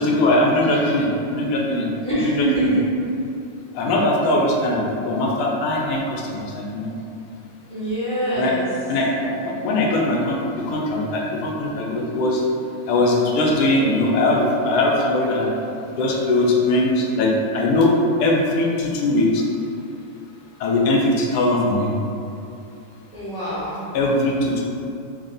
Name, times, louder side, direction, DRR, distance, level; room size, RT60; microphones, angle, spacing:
voice 1, 0.0-1.9 2.1-2.7 3.7-6.9 8.4-8.5 8.9-12.4 12.9-15.5 16.0-17.9 18.2-19.4 20.6-22.0 23.9-24.6, left 2 dB, 85° left, -1 dB, 1.5 m, -20 dB
voice 2, 2.0-2.8 7.7-8.7 23.1-23.9, right 2 dB, 40° right, -13 dB, 0.5 m, -24 dB
3.9 x 2.1 x 3.7 m, 2.6 s
omnidirectional pair, 2.4 m